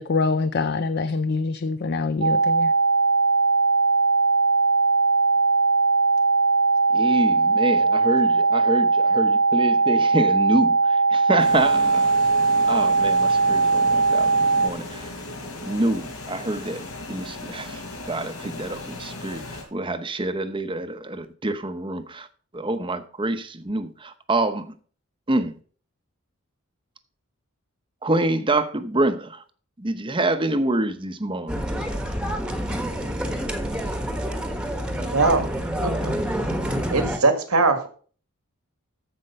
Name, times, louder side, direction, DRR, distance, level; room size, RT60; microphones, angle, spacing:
voice 1, 0.0-2.7, left 3 dB, 45° left, 0.5 m, -25 dB
sound 1, 2.2-14.7, right 4 dB, 50° right, 0.4 m, -19 dB
voice 2, 6.9-12.2 12.6-15.1 15.6-17.8 18.1-22.3 22.5-24.7 25.3-25.5 28.0-29.4 29.8-31.6, right 2 dB, 20° right, 0.8 m, -26 dB
sound 2, 11.4-19.6, left 2 dB, 80° left, 5.8 m, -37 dB
sound 3, 31.5-37.2, equal, 5° right, 1.2 m, -27 dB
voice 3, 35.0-35.5 35.8-36.1 36.9-37.9, right 3 dB, 85° right, 1.9 m, -21 dB
14.5 x 5.3 x 5.6 m
head